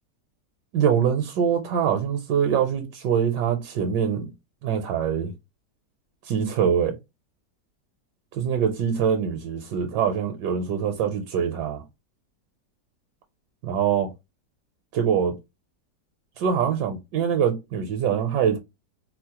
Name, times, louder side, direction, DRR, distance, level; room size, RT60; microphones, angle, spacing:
voice 1, 0.7-4.3 4.6-5.3 6.2-7.0 8.3-11.8 13.6-14.1 14.9-15.4 16.4-18.6, right 8 dB, 75° right, 1.2 m, -24 dB
4.6 x 2.0 x 2.8 m
omnidirectional pair, 1.9 m